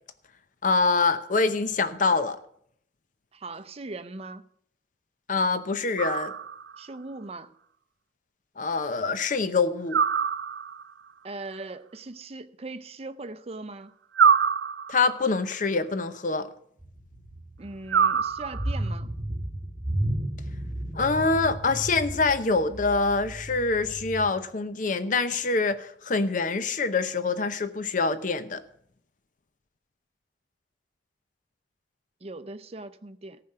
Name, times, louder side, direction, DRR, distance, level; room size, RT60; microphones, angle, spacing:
voice 1, 0.6-2.4 5.3-6.3 8.6-10.0 14.9-16.5 20.9-28.6, left 4 dB, 45° left, 0.7 m, -25 dB
voice 2, 3.3-4.4 6.8-7.5 11.2-13.9 17.6-19.1 32.2-33.4, right 2 dB, 35° right, 0.6 m, -40 dB
sound 1, 6.0-6.8 9.9-10.9 14.1-15.2 17.9-18.9, right 6 dB, 80° right, 0.5 m, -24 dB
sound 2, 16.8-24.3, right 1 dB, 15° right, 1.2 m, -34 dB
14.0 x 5.9 x 7.7 m
head